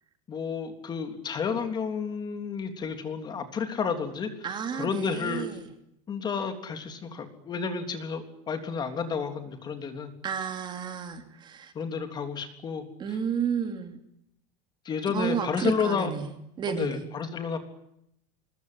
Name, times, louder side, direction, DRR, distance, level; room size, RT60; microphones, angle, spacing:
voice 1, 0.3-4.3 4.7-5.5 6.1-10.1 11.8-13.2 14.9-16.1 16.7-17.6, left 5 dB, 20° left, 7 dB, 3.5 m, -31 dB
voice 2, 4.4-5.7 10.2-11.7 13.0-14.0 15.1-16.3 16.6-17.0, right 7 dB, 25° right, 7 dB, 2.9 m, -32 dB
25.0 x 22.0 x 9.6 m, 0.77 s
cardioid pair, 165°, 19 cm